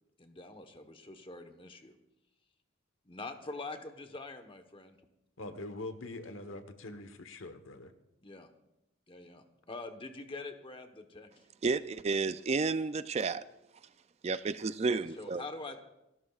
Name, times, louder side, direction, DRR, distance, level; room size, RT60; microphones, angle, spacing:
voice 1, 0.2-1.9 3.0-5.0 8.2-8.5 9.1-11.3 14.9-15.8, left 3 dB, 25° left, 6 dB, 1.1 m, -45 dB
voice 2, 5.4-7.9, left 2 dB, 75° left, 9 dB, 1.2 m, -43 dB
voice 3, 11.6-13.4 14.2-15.4, right 4 dB, 30° right, 13 dB, 0.4 m, -31 dB
27.5 x 12.5 x 2.4 m, 0.88 s
head